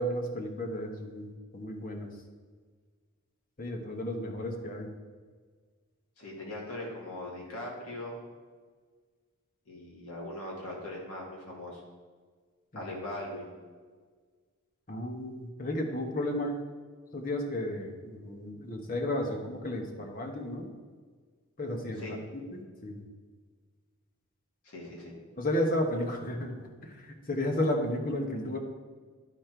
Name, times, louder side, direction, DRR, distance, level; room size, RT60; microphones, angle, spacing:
voice 1, 0.0-2.1 3.6-4.9 12.7-12.9 14.9-16.5 17.1-20.7 21.6-22.2 22.5-23.0 25.4-28.6, left 1 dB, 40° left, 3 dB, 1.1 m, -33 dB
voice 2, 6.2-8.2 9.7-11.8 12.8-13.5 22.0-22.2 24.6-25.1, left 1 dB, 80° left, -2 dB, 2.3 m, -40 dB
12.0 x 4.3 x 4.5 m, 1.5 s
head